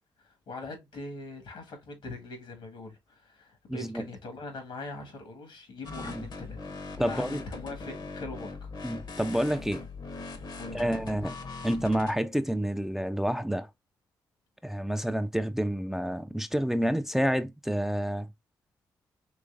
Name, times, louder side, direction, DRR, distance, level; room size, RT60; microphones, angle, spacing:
voice 1, 0.2-8.7 10.6-10.9, left 2 dB, 75° left, 1.4 m, -42 dB
voice 2, 3.7-4.1 6.0-6.2 7.0-7.4 8.8-9.8 10.7-11.4 11.6-13.7 14.6-18.3, equal, 5° right, 0.4 m, -29 dB
sound 1, 5.8-12.1, left 3 dB, 60° left, 0.9 m, -41 dB
3.9 x 3.1 x 2.5 m
supercardioid pair, 50°, 8 cm